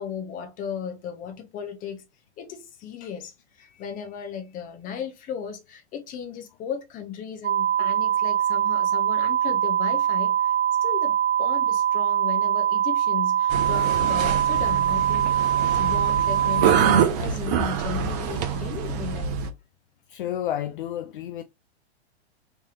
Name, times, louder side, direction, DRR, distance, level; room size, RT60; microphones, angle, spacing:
voice 1, 0.0-2.0 2.4-10.5 10.8-19.4, left 8 dB, 25° left, 0.9 m, -36 dB
sound 1, 7.4-17.0, right 10 dB, 85° right, 0.5 m, -23 dB
sound 2, 13.5-19.5, right 8 dB, 40° right, 0.8 m, -26 dB
voice 2, 20.1-21.4, left 11 dB, 50° left, 0.5 m, -30 dB
3.5 x 3.2 x 2.9 m
figure-of-eight pair, 105°, 33 cm